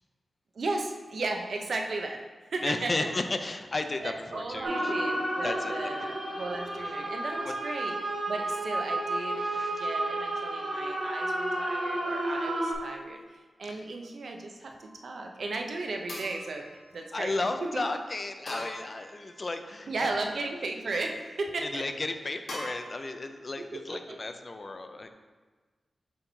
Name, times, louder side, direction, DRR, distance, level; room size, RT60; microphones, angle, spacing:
voice 1, 0.5-2.2 2.5-3.1 4.0-7.9 8.3-9.5 9.8-13.2 13.6-16.7 16.9-17.3 17.6-17.8 19.9-21.8 23.6-24.2, right 3 dB, 65° right, 3 dB, 0.7 m, -35 dB
voice 2, 2.6-4.9 5.4-5.7 6.0-6.1 7.4-7.5 9.3-9.9 13.7-13.9 17.1-20.1 21.6-25.1, left 2 dB, 35° left, 7 dB, 0.4 m, -34 dB
sound 1, 4.6-12.7, right 1 dB, 40° right, 1.6 m, -31 dB
sound 2, 14.8-15.3 16.1-17.5 18.5-19.6 20.1-20.8 22.5-22.7, left 1 dB, 65° left, 1.9 m, -44 dB
7.2 x 4.0 x 4.5 m, 1.4 s
wide cardioid pair, 145°, 0 cm